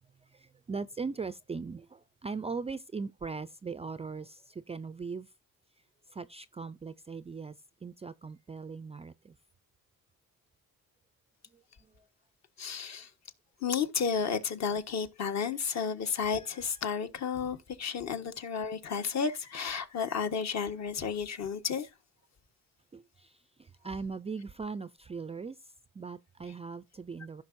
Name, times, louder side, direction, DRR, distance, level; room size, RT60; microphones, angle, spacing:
voice 1, 0.3-5.3 6.1-7.5 7.8-9.3 12.0-12.1 22.9-25.6 25.9-27.4, right 4 dB, 20° right, 0.4 m, -39 dB
voice 2, 12.6-13.1 13.6-21.9, left 6 dB, 50° left, 1.4 m, -32 dB
15.0 x 6.0 x 2.6 m
cardioid pair, 115°, 34 cm